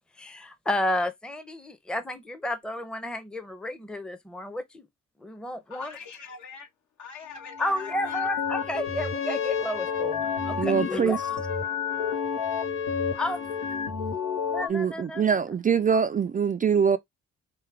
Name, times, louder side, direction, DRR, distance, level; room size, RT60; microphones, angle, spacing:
voice 1, 0.2-4.9 5.2-6.0 7.6-11.2 13.2-13.5 14.5-15.4, left 1 dB, 5° left, 0.7 m, -32 dB
voice 2, 5.7-6.7 7.0-8.3 13.1-13.2, left 5 dB, 70° left, 1.7 m, -44 dB
sound 1, 7.3-14.7, left 6 dB, 90° left, 1.2 m, -30 dB
Trumpet, 8.4-13.9, left 8 dB, 45° left, 0.7 m, -38 dB
voice 3, 10.6-11.2 14.7-17.0, right 7 dB, 30° right, 0.4 m, -23 dB
4.7 x 2.2 x 3.3 m
cardioid pair, 90°, 30 cm